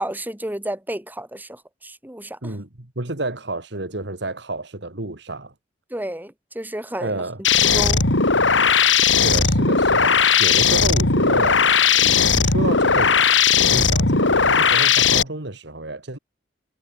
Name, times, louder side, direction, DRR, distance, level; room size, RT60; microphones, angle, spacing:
voice 1, 0.0-2.6 5.9-7.2 7.6-8.0, right 1 dB, 10° right, 3.7 m, -31 dB
voice 2, 2.4-5.5 7.0-7.4 9.1-11.6 12.0-13.1 13.5-16.2, right 2 dB, 65° right, 2.5 m, -30 dB
sound 1, 7.4-15.2, left 6 dB, 90° left, 3.0 m, -17 dB
head